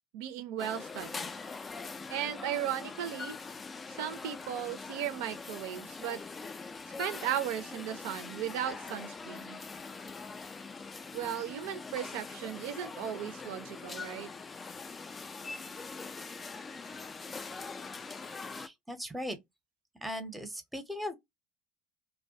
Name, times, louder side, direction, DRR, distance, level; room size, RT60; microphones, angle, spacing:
voice 1, 0.1-1.3 2.1-3.4 3.9-6.2 7.0-9.6 11.1-14.3, right 10 dB, 65° right, 0.5 m, -36 dB
sound 1, 0.6-18.7, left 4 dB, 25° left, 0.3 m, -43 dB
voice 2, 18.5-19.4 20.0-21.1, equal, 5° right, 0.7 m, -38 dB
2.2 x 2.1 x 2.6 m
figure-of-eight pair, 70°, 0 cm